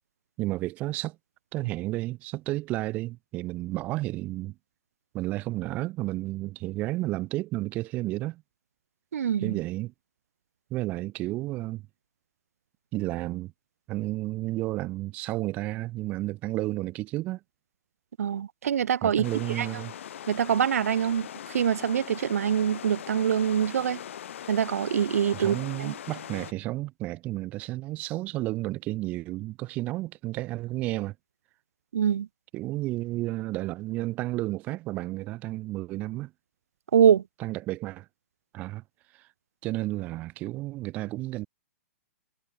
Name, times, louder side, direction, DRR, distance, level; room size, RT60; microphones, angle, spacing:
voice 1, 0.4-1.2 1.5-4.5 5.1-8.4 9.4-9.9 10.7-11.8 12.9-13.5 13.9-17.4 19.0-19.9 25.3-31.1 32.5-36.3 37.4-38.0 38.5-38.8 39.6-41.5, right 18 dB, 20° right, 1.4 m, -32 dB
voice 2, 9.1-9.6 18.2-19.2 19.6-19.7 20.3-24.0 24.5-25.9 31.9-32.3 36.9-37.2, right 8 dB, 85° right, 0.6 m, -24 dB
sound 1, 19.2-26.5, left 10 dB, 60° left, 5.5 m, -41 dB
hypercardioid pair, 170°, 8 cm